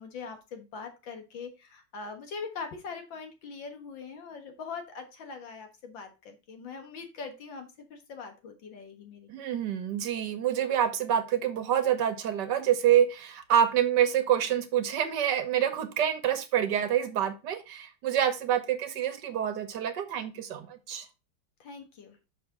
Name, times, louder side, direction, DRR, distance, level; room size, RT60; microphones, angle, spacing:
voice 1, 0.0-9.3 21.6-22.2, left 5 dB, 65° left, 5 dB, 2.1 m, -42 dB
voice 2, 9.3-21.1, right 10 dB, 60° right, 8 dB, 1.5 m, -27 dB
6.1 x 5.9 x 3.7 m, 0.27 s
omnidirectional pair, 2.3 m